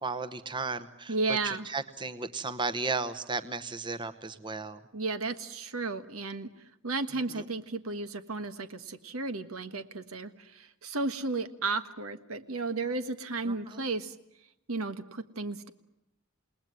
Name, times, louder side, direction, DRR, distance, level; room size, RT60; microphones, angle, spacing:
voice 1, 0.0-4.8 7.3-7.4 13.5-13.9, right 3 dB, 20° right, 10 dB, 1.0 m, -35 dB
voice 2, 1.1-1.6 4.9-6.5 6.8-14.1 14.7-15.7, right 3 dB, 85° right, 10 dB, 1.5 m, -33 dB
28.5 x 19.5 x 9.5 m, 0.87 s
head